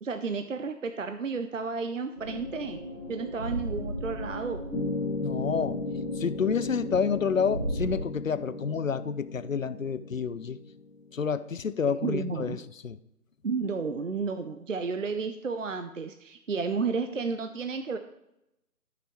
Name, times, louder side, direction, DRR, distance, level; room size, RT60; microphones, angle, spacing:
voice 1, 0.0-2.8 3.1-4.6 12.0-12.6 13.4-18.0, right 5 dB, 55° right, 8 dB, 0.6 m, -32 dB
sound 1, 2.1-8.0, equal, 20° right, 1.0 m, -36 dB
sound 2, 4.7-11.2, left 3 dB, 75° left, 2.1 m, -36 dB
voice 2, 5.2-5.8 6.2-10.6 11.1-12.6 12.8-13.0, left 6 dB, 60° left, 15 dB, 0.6 m, -29 dB
13.5 x 5.9 x 3.1 m, 0.85 s
figure-of-eight pair, 170°, 46 cm